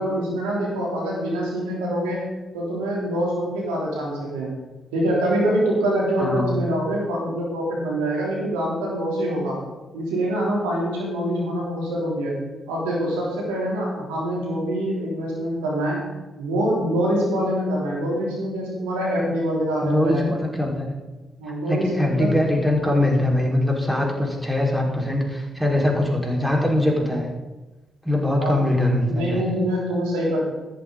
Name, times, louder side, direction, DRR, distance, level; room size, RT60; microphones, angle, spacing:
voice 1, 0.0-2.2 2.5-4.5 4.9-9.6 9.9-12.4 12.7-16.0 16.4-20.3 21.4-22.4 28.4-28.6 29.1-30.4, right 1 dB, 85° right, -4 dB, 3.5 m, -25 dB
voice 2, 6.2-6.5 19.8-20.9 21.7-27.3 28.0-29.4, left 1 dB, 5° right, -2 dB, 4.8 m, -22 dB
14.5 x 11.5 x 4.0 m, 1.1 s
hypercardioid pair, 45°, 0 cm